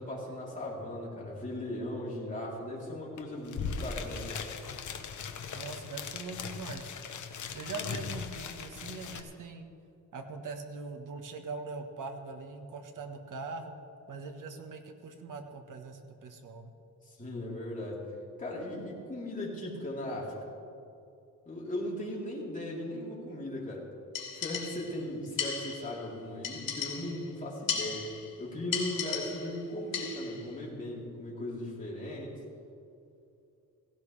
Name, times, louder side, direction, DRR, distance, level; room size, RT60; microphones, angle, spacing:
voice 1, 0.0-4.5 17.0-18.0 18.4-20.3 21.5-23.8 24.4-28.1 28.4-32.4, left 1 dB, 25° left, -5 dB, 3.6 m, -38 dB
sound 1, 3.2-3.3 3.4-9.2, left 6 dB, 60° left, 1.1 m, -39 dB
voice 2, 5.5-6.9 7.5-9.7 10.1-13.7 14.1-16.7, right 4 dB, 65° right, 4 dB, 1.5 m, -42 dB
sound 2, 24.1-25.0 25.4-26.0 26.4-27.3 27.7-28.3 28.7-29.6 29.9-30.4, left 6 dB, 85° left, 2.7 m, -36 dB
17.0 x 16.5 x 3.4 m, 2.6 s
wide cardioid pair, 135°, 33 cm